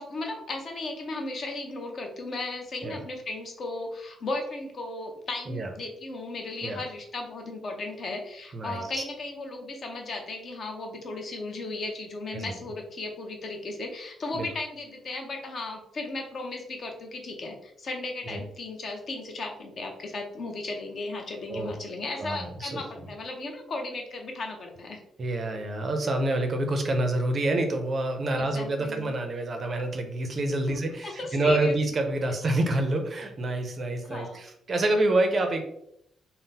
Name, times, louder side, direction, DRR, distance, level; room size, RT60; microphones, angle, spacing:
voice 1, 0.0-25.0 28.4-29.1 30.7-31.7 34.0-34.4, left 2 dB, 40° left, 3 dB, 0.7 m, -36 dB
voice 2, 8.5-9.0 12.3-12.5 14.3-14.5 18.3-18.4 21.5-21.7 22.2-22.8 25.2-35.6, right 2 dB, 35° right, 5 dB, 0.5 m, -27 dB
3.8 x 2.0 x 3.9 m, 0.75 s
cardioid pair, 160°, 0 cm